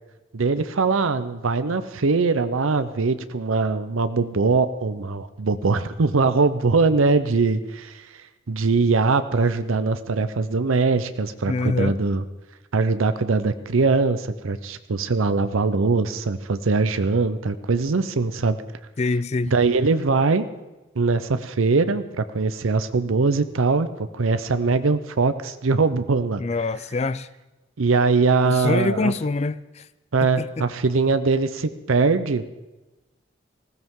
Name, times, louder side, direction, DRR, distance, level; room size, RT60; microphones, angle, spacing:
voice 1, 0.3-8.1 8.5-12.2 12.7-18.6 19.4-20.5 21.0-26.4 27.8-29.1 30.1-32.4, right 4 dB, 90° right, 0.7 m, -22 dB
voice 2, 11.5-11.9 19.0-19.5 26.4-27.3 28.4-29.8 30.4-30.6, left 3 dB, 35° left, 0.4 m, -25 dB
19.5 x 16.0 x 3.7 m
head